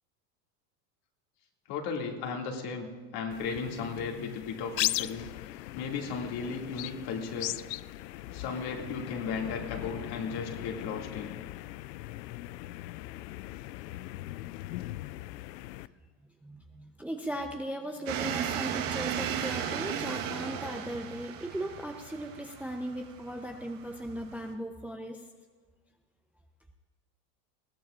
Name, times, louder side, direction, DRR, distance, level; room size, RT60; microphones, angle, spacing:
voice 1, 1.7-7.5 8.3-11.4, left 5 dB, 50° left, 1 dB, 2.5 m, -36 dB
sound 1, 3.3-15.9, left 17 dB, 80° left, 0.5 m, -38 dB
voice 2, 16.4-25.2, right 1 dB, 5° right, 3 dB, 0.7 m, -38 dB
sound 2, 18.1-24.5, right 8 dB, 45° right, 1.4 m, -35 dB
20.5 x 15.0 x 2.5 m, 1.5 s
hypercardioid pair, 105°, 49 cm